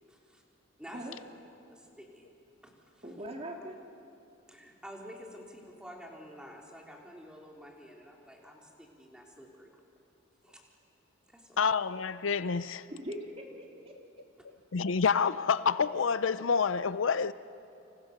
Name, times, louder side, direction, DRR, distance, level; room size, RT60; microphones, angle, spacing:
voice 1, 0.1-0.4 0.8-1.0 1.7-2.3 2.6-3.0 4.5-9.7 10.4-10.6 11.3-11.6, equal, 5° right, 3.6 m, -50 dB
voice 2, 3.0-3.8 12.9-13.9, equal, 30° right, 2.6 m, -41 dB
voice 3, 11.6-12.9 14.7-17.3, left 5 dB, 75° left, 0.6 m, -28 dB
30.0 x 26.5 x 6.7 m
head